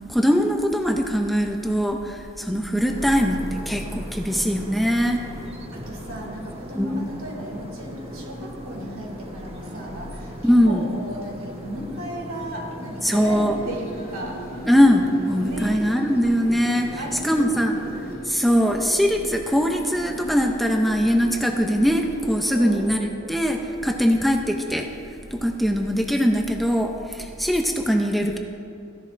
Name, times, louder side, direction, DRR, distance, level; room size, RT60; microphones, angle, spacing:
voice 1, 0.1-5.2 6.8-7.1 10.4-10.9 13.0-13.6 14.7-17.7 18.2-24.9 25.3-28.4, equal, ahead, 2 dB, 0.5 m, -21 dB
sound 1, 2.9-18.2, equal, 30° right, 1.2 m, -39 dB
voice 2, 5.7-14.4 15.4-16.0 16.9-17.9 22.5-22.8, equal, 75° right, -1 dB, 2.3 m, -35 dB
sound 2, 13.5-22.9, equal, 40° left, 0.8 m, -38 dB
15.0 x 11.0 x 2.5 m, 2.5 s
head